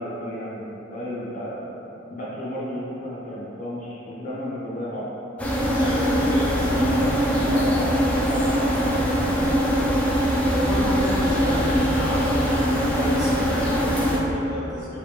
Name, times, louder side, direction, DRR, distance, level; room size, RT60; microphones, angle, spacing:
voice 1, 0.0-1.6 2.1-5.1 6.7-7.1 7.4-7.8 8.2-10.2 11.6-11.8, equal, 40° left, -8 dB, 0.7 m, -33 dB
sound 1, 5.4-14.2, equal, 5° left, 0.4 m, -22 dB
voice 2, 5.8-7.9 10.5-15.0, equal, 20° right, -9 dB, 0.9 m, -32 dB
3.3 x 3.2 x 3.2 m, 3.0 s
head